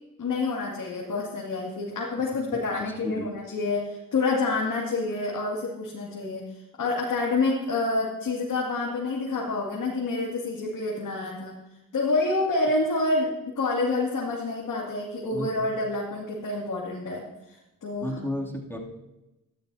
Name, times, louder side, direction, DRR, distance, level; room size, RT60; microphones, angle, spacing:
voice 1, 0.2-6.4 6.8-11.6 11.9-17.5 17.8-18.2, left 3 dB, 60° left, -4 dB, 2.5 m, -28 dB
voice 2, 2.8-3.3 15.3-15.5 18.0-18.8, left 1 dB, 5° left, -1 dB, 2.8 m, -33 dB
13.0 x 12.5 x 2.8 m, 0.97 s
cardioid pair, 65°, 35 cm